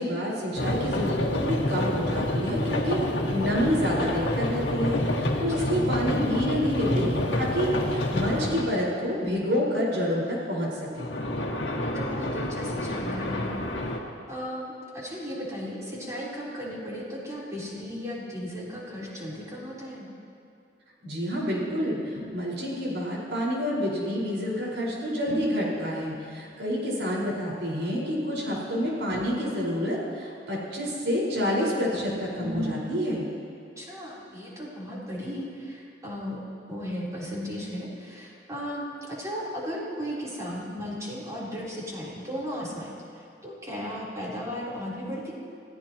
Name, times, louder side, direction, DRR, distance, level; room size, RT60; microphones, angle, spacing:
voice 1, 0.0-3.0 3.3-11.1 21.0-33.3, equal, 80° right, -4 dB, 5.0 m, -28 dB
sound 1, 0.6-8.8 11.0-14.0, left 1 dB, 80° left, 1.8 m, -28 dB
voice 2, 11.8-20.1 28.4-28.6 33.8-36.4 36.7-45.3, equal, 20° right, -6 dB, 3.8 m, -36 dB
27.5 x 15.5 x 3.0 m, 2.5 s
head